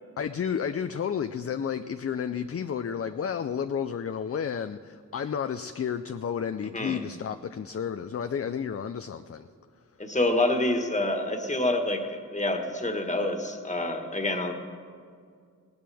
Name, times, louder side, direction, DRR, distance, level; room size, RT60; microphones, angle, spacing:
voice 1, 0.2-9.5, left 7 dB, 45° left, 9 dB, 0.5 m, -31 dB
voice 2, 6.6-7.0 10.0-14.5, left 1 dB, 20° left, 4 dB, 1.6 m, -27 dB
20.0 x 17.5 x 3.5 m, 2.1 s
wide cardioid pair, 85°, 34 cm